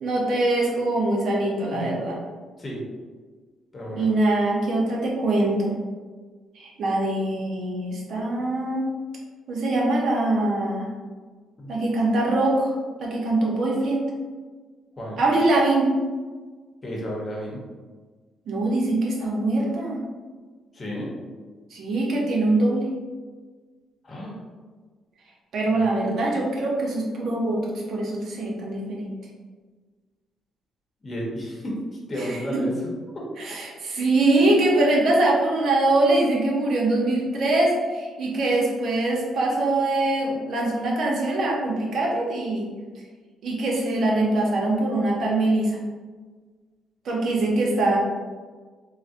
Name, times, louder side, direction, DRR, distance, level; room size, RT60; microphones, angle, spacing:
voice 1, 0.0-2.2 4.0-5.7 6.6-8.8 9.5-10.9 11.7-12.7 13.0-14.0 15.2-15.9 18.5-20.0 21.7-22.9 25.5-29.1 32.2-32.3 33.4-42.7 43.4-45.8 47.0-48.0, right 2 dB, 65° right, -2 dB, 0.7 m, -23 dB
voice 2, 3.7-4.1 11.6-11.7 15.0-15.2 16.8-17.6 20.7-21.1 24.0-24.4 25.6-25.8 31.0-31.8 32.1-32.7 33.1-33.3 34.4-34.5, equal, 35° left, -3 dB, 0.9 m, -32 dB
3.9 x 2.1 x 2.5 m, 1.4 s
cardioid pair, 90°, 0 cm